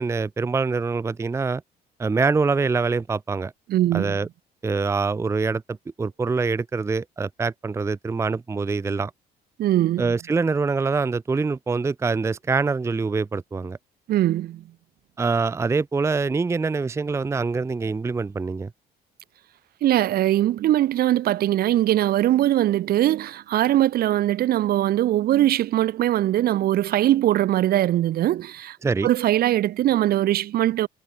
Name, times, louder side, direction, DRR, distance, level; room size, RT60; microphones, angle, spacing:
voice 1, 0.0-1.6 2.0-3.5 3.9-4.3 4.6-9.1 10.0-13.8 15.2-18.7 28.8-29.1, right 4 dB, 15° right, 0.6 m, -24 dB
voice 2, 3.7-4.2 9.6-10.1 14.1-14.6 19.8-28.8 29.0-30.9, right 13 dB, 65° right, 1.3 m, -21 dB
cardioid pair, 110°, 17 cm